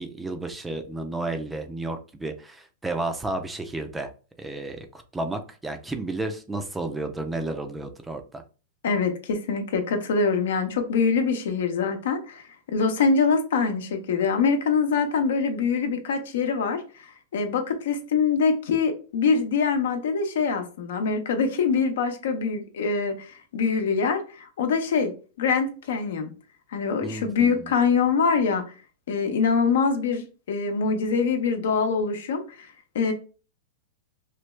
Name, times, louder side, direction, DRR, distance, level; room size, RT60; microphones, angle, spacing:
voice 1, 0.0-4.1 4.4-8.4 27.0-27.7, right 2 dB, 10° right, 6 dB, 0.4 m, -32 dB
voice 2, 8.8-25.1 25.4-26.3 26.7-28.6 29.1-32.7 32.9-33.1, left 5 dB, 80° left, 6 dB, 0.7 m, -24 dB
3.2 x 2.3 x 3.1 m, 0.35 s
hypercardioid pair, 140°, 0 cm